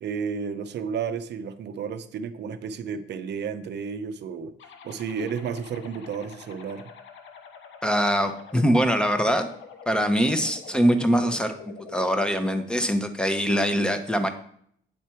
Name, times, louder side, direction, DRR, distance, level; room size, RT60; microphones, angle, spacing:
voice 1, 0.0-4.5 4.8-6.9, right 6 dB, 60° right, 11 dB, 0.6 m, -32 dB
sound 1, 4.6-12.6, left 5 dB, 70° left, 0.8 m, -46 dB
voice 2, 7.8-9.5 9.9-11.5 11.9-14.3, equal, 5° left, 8 dB, 0.8 m, -23 dB
8.5 x 3.3 x 4.4 m, 0.65 s
cardioid pair, 90°, 20 cm